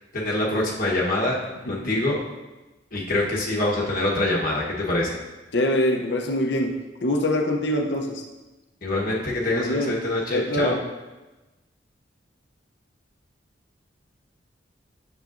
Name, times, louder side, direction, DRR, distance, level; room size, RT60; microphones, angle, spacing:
voice 1, 0.1-1.4 1.7-2.2 2.9-5.2 8.8-10.8, left 1 dB, 50° left, -4 dB, 1.2 m, -25 dB
voice 2, 1.7-2.0 5.5-8.2 9.5-10.0 10.3-10.8, left 1 dB, 65° left, 2 dB, 0.8 m, -24 dB
10.5 x 6.6 x 2.6 m, 1.1 s
head